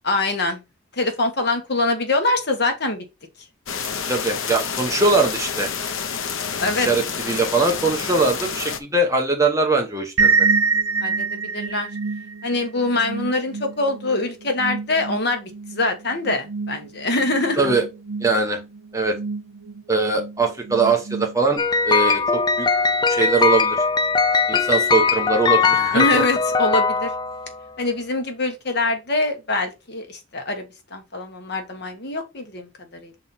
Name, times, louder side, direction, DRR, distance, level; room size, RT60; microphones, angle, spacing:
voice 1, 0.0-0.6 0.9-3.0 6.6-6.9 11.0-11.9 12.4-17.7 25.9-27.1 27.8-30.6 30.9-32.7 33.0-33.1, left 2 dB, 50° left, 1.3 m, -24 dB
sound 1, 3.7-8.8, left 6 dB, 75° left, 0.8 m, -28 dB
voice 2, 4.1-5.7 6.7-10.5 17.6-17.8 18.2-18.6 18.9-19.2 19.9-22.7 23.1-23.8 24.5-26.2, right 3 dB, 15° right, 1.1 m, -21 dB
sound 2, 10.2-21.8, right 4 dB, 75° right, 2.0 m, -27 dB
sound 3, 21.6-27.6, left 5 dB, 20° left, 0.3 m, -20 dB
6.2 x 4.0 x 4.1 m
head